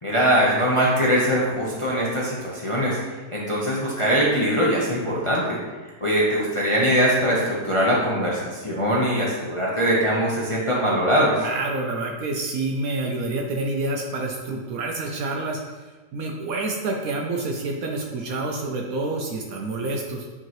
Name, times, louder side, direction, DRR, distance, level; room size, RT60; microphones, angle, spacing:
voice 1, 0.0-3.0 3.3-5.6 6.0-11.4, equal, 25° left, -5 dB, 0.7 m, -22 dB
voice 2, 11.3-15.6 16.1-20.3, right 2 dB, 65° right, 1 dB, 1.0 m, -28 dB
8.9 x 3.7 x 3.0 m, 1.3 s
omnidirectional pair, 1.8 m